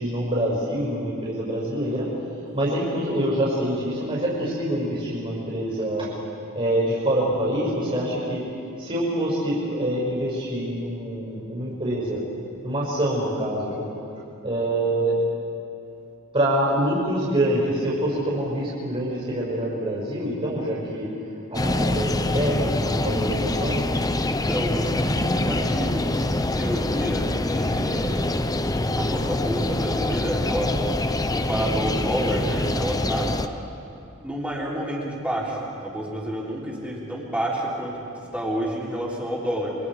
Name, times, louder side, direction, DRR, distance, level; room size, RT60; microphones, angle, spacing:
voice 1, 0.0-2.1 2.5-6.1 6.5-8.4 8.8-12.2 12.6-13.9 14.4-15.2 16.3-21.1 21.5-23.9, right 1 dB, 30° right, -6 dB, 5.8 m, -25 dB
sound 1, 21.5-33.5, left 2 dB, 15° left, 0.7 m, -25 dB
voice 2, 24.3-28.3 29.0-30.7 31.3-33.3 34.2-38.0 38.3-39.8, right 1 dB, 5° right, -4 dB, 3.8 m, -29 dB
28.0 x 24.5 x 4.9 m, 2.7 s
head